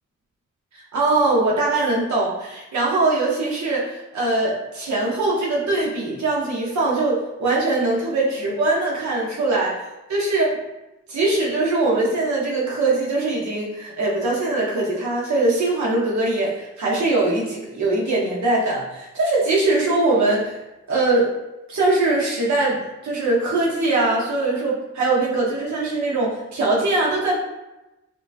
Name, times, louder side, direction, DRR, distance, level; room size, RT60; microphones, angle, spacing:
voice 1, 0.9-9.7 10.1-10.5 11.1-20.6 20.9-21.4 21.7-27.4, right 2 dB, 70° right, -5 dB, 1.2 m, -21 dB
5.7 x 2.4 x 2.8 m, 0.99 s
wide cardioid pair, 165°, 29 cm